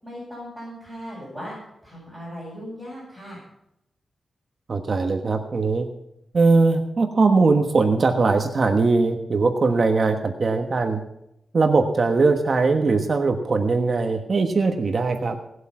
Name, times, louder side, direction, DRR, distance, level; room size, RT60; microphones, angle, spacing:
voice 1, 0.0-1.6 1.8-3.4, equal, 5° left, -9 dB, 7.4 m, -37 dB
voice 2, 4.7-5.9 6.3-11.0 11.5-15.4, right 3 dB, 40° right, 5 dB, 1.2 m, -20 dB
18.5 x 8.1 x 5.8 m, 0.82 s
wide cardioid pair, 150°, 0 cm